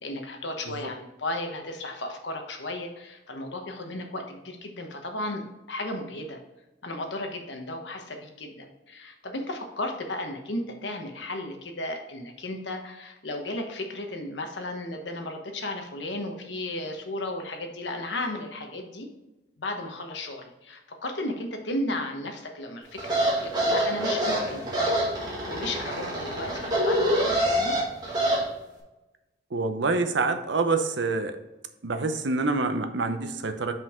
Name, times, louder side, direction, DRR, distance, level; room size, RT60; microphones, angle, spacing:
voice 1, 0.0-6.4 6.8-19.1 19.6-27.7, left 1 dB, 80° left, 4 dB, 1.1 m, -34 dB
sound 1, 23.0-28.4, right 1 dB, 25° right, 1.8 m, -26 dB
voice 2, 29.5-31.4 31.8-33.7, right 3 dB, 80° right, 8 dB, 0.7 m, -26 dB
5.7 x 5.3 x 3.7 m, 1.0 s
head